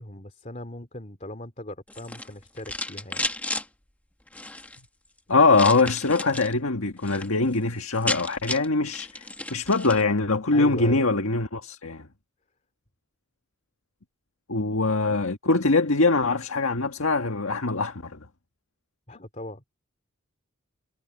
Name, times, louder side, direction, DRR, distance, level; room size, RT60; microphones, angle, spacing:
voice 1, 0.0-3.3 10.5-11.1 19.1-19.6, left 1 dB, 35° left, 2.6 m, -39 dB
sound 1, 1.9-3.7 4.3-4.8 5.5-6.5 6.9-7.3 7.6-7.7 7.8-10.0, left 2 dB, 5° left, 1.1 m, -33 dB
voice 2, 5.3-12.1 14.5-18.2, left 3 dB, 85° left, 1.6 m, -23 dB
head